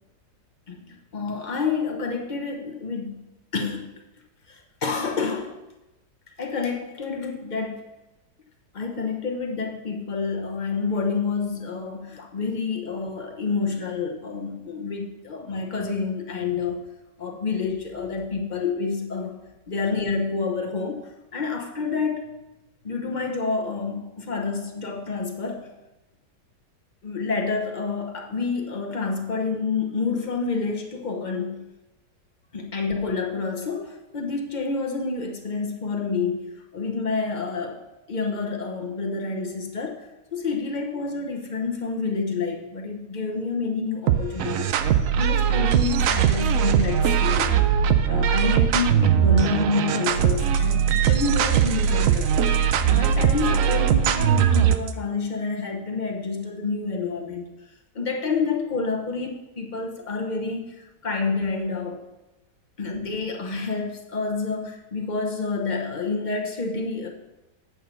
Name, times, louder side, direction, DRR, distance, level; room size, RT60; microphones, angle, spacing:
voice 1, 0.7-3.2 3.5-3.9 4.5-5.6 6.4-7.8 8.7-16.9 17.2-19.4 19.7-22.3 22.8-25.7 27.0-31.7 32.5-47.7 48.0-57.5 57.9-62.0 62.8-67.1, left 4 dB, 35° left, 2 dB, 0.8 m, -28 dB
sound 1, 44.1-54.9, right 8 dB, 75° right, 0.7 m, -20 dB
8.2 x 4.7 x 6.9 m, 1.0 s
omnidirectional pair, 1.9 m